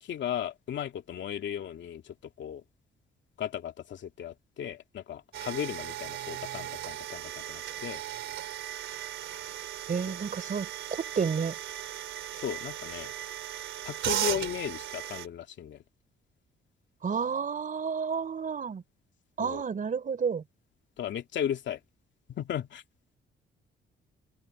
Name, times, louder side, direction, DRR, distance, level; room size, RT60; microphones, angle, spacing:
voice 1, 0.0-2.6 3.4-8.0 10.1-10.2 12.3-13.1 13.8-15.8 19.4-19.6 21.0-21.8 22.3-22.8, left 9 dB, 65° left, 2.6 m, -36 dB
sound 1, 5.3-15.3, right 11 dB, 75° right, 3.5 m, -37 dB
voice 2, 9.9-11.6 17.0-18.8 19.4-20.4, right 6 dB, 45° right, 3.7 m, -31 dB
open air
cardioid pair, 90°, 20 cm